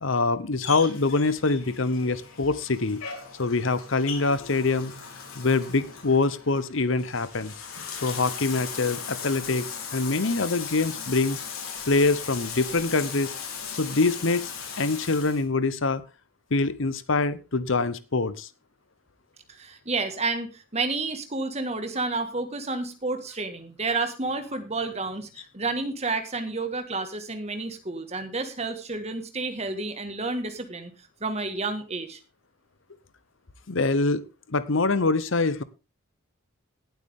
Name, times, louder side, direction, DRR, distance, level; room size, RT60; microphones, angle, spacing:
voice 1, 0.0-3.0 3.4-4.9 5.3-7.5 8.0-11.4 11.9-13.3 13.8-14.5 14.8-16.0 16.5-18.5 33.7-35.6, left 3 dB, 65° left, 16 dB, 0.9 m, -24 dB
Bathtub (filling or washing), 0.6-15.4, left 6 dB, 85° left, 3.7 m, -38 dB
voice 2, 19.6-30.9 31.2-32.2, right 3 dB, 30° right, 8 dB, 1.7 m, -30 dB
18.0 x 8.2 x 3.7 m, 0.30 s
head